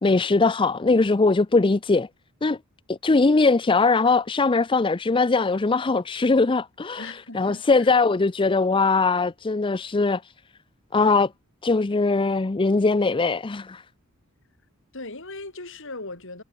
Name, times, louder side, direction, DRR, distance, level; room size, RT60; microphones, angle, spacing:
voice 1, 0.0-2.1 2.4-2.6 2.9-10.2 10.9-11.3 11.6-13.8, left 3 dB, 25° left, 0.5 m, -21 dB
voice 2, 7.0-7.9 14.9-16.4, left 2 dB, 60° left, 6.8 m, -38 dB
head